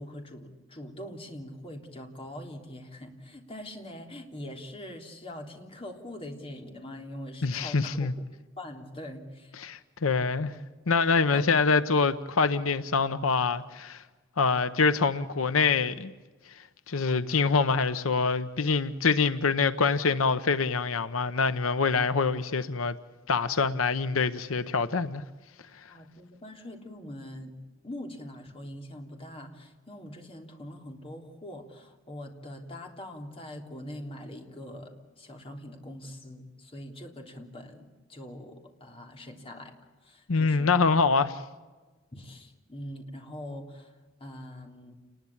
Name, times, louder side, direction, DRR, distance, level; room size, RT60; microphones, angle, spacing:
voice 1, 0.0-8.2 8.6-9.7 10.5-10.6 11.3-11.4 25.9-27.6 27.8-39.7 40.0-40.8 42.1-44.9, left 1 dB, 30° left, 3.4 m, -43 dB
voice 2, 7.4-8.1 9.6-10.5 10.9-14.0 14.4-16.1 16.5-23.0 23.3-25.2 25.8-25.9 40.3-41.4, left 4 dB, 90° left, 0.9 m, -25 dB
29.0 x 20.5 x 8.7 m
head